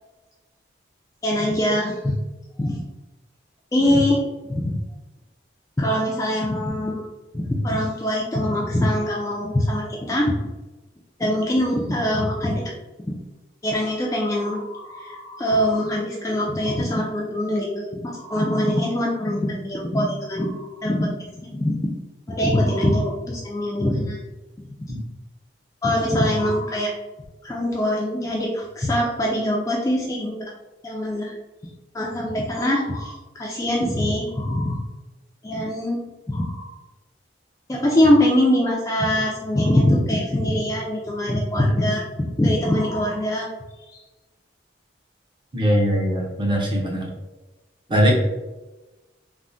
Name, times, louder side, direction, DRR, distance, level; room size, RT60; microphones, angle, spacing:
voice 1, 1.2-2.1 2.6-2.8 3.7-4.8 5.8-7.1 7.3-10.3 11.2-12.7 13.6-21.9 22.3-24.2 24.6-24.7 25.8-26.9 27.4-30.5 30.8-31.3 31.9-34.8 35.4-36.0 36.3-36.7 37.7-43.5 43.9-44.0, left 1 dB, 15° left, -3 dB, 0.3 m, -23 dB
voice 2, 45.5-47.1 47.9-48.1, equal, 25° right, -2 dB, 0.6 m, -21 dB
3.4 x 2.1 x 2.5 m, 1.1 s
head